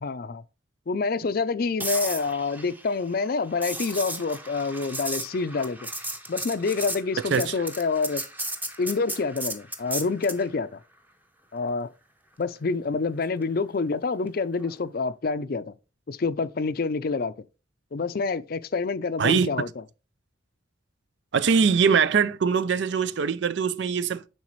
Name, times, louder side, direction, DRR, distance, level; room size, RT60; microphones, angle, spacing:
voice 1, 0.0-0.4 0.9-5.8 6.3-8.2 8.8-10.8 11.5-11.9 12.4-15.7 16.1-17.3 17.9-19.7, left 4 dB, 50° left, 0.5 m, -27 dB
sound 1, 1.8-10.5 14.6-14.9, right 1 dB, 10° right, 0.7 m, -35 dB
voice 2, 19.2-19.6 21.3-24.2, right 6 dB, 65° right, 0.4 m, -22 dB
9.6 x 4.0 x 3.1 m
head